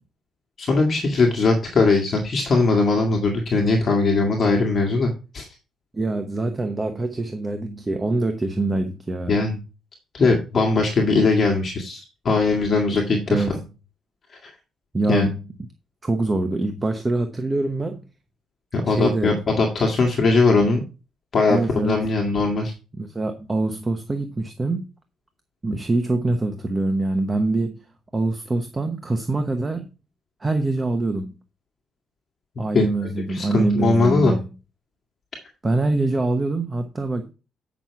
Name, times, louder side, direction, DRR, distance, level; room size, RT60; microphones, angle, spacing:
voice 1, 0.6-5.5 9.3-9.6 10.1-13.6 14.4-14.5 15.1-15.3 18.7-20.8 21.3-22.7 32.7-34.3, left 3 dB, 40° left, 1.9 m, -20 dB
voice 2, 5.9-9.4 13.3-13.6 14.9-15.4 16.0-18.0 18.8-19.4 21.5-22.1 22.9-24.9 25.6-27.7 28.1-29.9 30.4-31.3 32.6-34.4 35.6-37.3, right 2 dB, 20° right, 0.9 m, -24 dB
8.9 x 6.2 x 4.6 m
cardioid pair, 135°, 0 cm